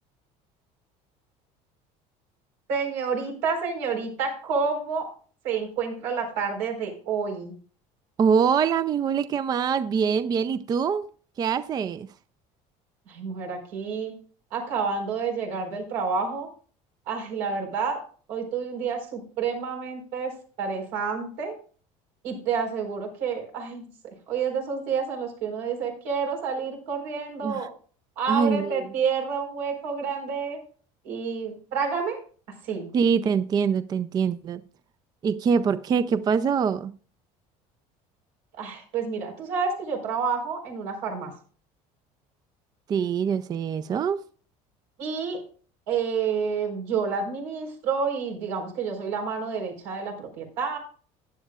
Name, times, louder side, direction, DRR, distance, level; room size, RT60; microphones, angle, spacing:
voice 1, 2.7-5.1 5.4-7.5 13.1-14.1 14.5-16.5 17.1-18.0 18.3-21.5 22.2-23.8 24.3-27.7 28.2-30.6 31.0-32.2 32.6-32.9 38.6-41.3 45.0-45.4 45.9-50.8, right 5 dB, 90° right, 4.3 m, -29 dB
voice 2, 8.2-11.1 11.4-12.1 27.4-27.6 28.3-28.8 32.9-34.6 35.2-36.9 42.9-44.2, right 6 dB, 25° right, 0.4 m, -24 dB
14.5 x 9.8 x 2.4 m
cardioid pair, 140°, 15 cm